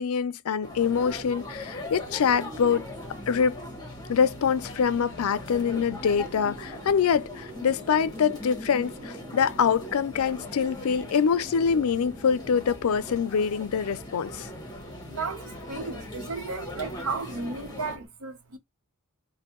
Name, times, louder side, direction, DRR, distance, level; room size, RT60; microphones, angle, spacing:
voice 1, 0.0-2.9 3.3-3.6 4.1-14.5, left 6 dB, 80° left, 0.4 m, -25 dB
sound 1, 0.6-18.0, left 1 dB, 20° left, 1.1 m, -41 dB
sound 2, 0.7-18.1, right 1 dB, 45° right, 0.7 m, -46 dB
voice 2, 15.1-18.6, right 4 dB, 80° right, 0.9 m, -34 dB
4.2 x 2.2 x 3.0 m
head